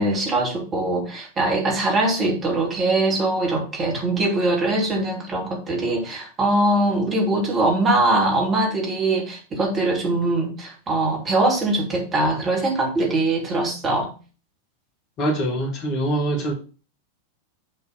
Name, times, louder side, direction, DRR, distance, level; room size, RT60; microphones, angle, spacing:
voice 1, 0.0-14.1, right 2 dB, 25° right, 2.7 m, -22 dB
voice 2, 15.2-16.5, right 1 dB, 40° left, 1.8 m, -23 dB
7.1 x 3.9 x 5.8 m
figure-of-eight pair, 90°, 0 cm